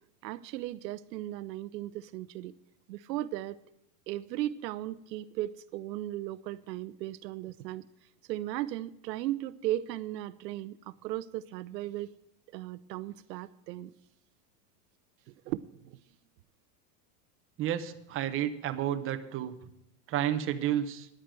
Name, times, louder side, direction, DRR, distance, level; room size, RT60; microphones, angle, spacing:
voice 1, 0.2-2.5 2.9-3.6 4.1-7.9 8.3-12.1 12.5-13.9 15.3-16.0, right 14 dB, 85° right, 16 dB, 0.7 m, -36 dB
voice 2, 17.6-19.5 20.1-21.1, right 11 dB, 25° right, 8 dB, 0.9 m, -31 dB
10.5 x 8.5 x 7.5 m, 0.82 s
supercardioid pair, 140°, 49 cm